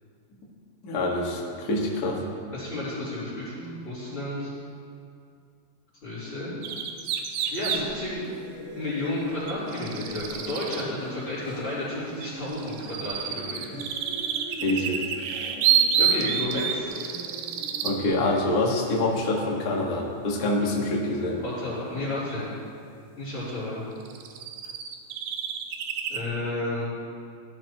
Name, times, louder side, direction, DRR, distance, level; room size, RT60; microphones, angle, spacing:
voice 1, 0.8-2.2 14.6-15.0 17.8-21.4, left 2 dB, 85° left, -2 dB, 0.8 m, -26 dB
voice 2, 2.5-4.5 6.0-6.5 7.5-8.2 8.7-13.8 16.0-17.1 21.4-22.5 23.2-23.8 26.1-26.9, left 1 dB, 30° left, -12 dB, 4.4 m, -32 dB
sound 1, 6.6-7.8 9.5-10.9 12.2-18.0 22.3-22.4 23.5-23.6 24.0-26.2, right 8 dB, 75° right, 2.4 m, -28 dB
sound 2, 7.3-19.9, right 1 dB, 10° right, 1.5 m, -44 dB
16.5 x 13.5 x 3.0 m, 2.3 s
omnidirectional pair, 4.7 m